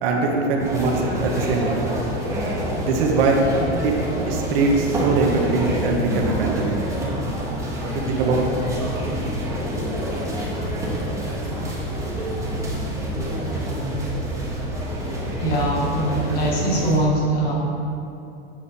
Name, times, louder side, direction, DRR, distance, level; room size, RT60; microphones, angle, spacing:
voice 1, 0.0-1.9 2.8-3.4 3.8-3.9 4.3-6.8 7.8-8.4, right 3 dB, 60° right, 0 dB, 1.1 m, -22 dB
sound 1, 0.6-17.0, equal, 10° right, 1.0 m, -27 dB
voice 2, 15.4-17.5, right 1 dB, 25° left, -3 dB, 1.4 m, -22 dB
7.7 x 4.8 x 4.2 m, 2.7 s
supercardioid pair, 155°, 33 cm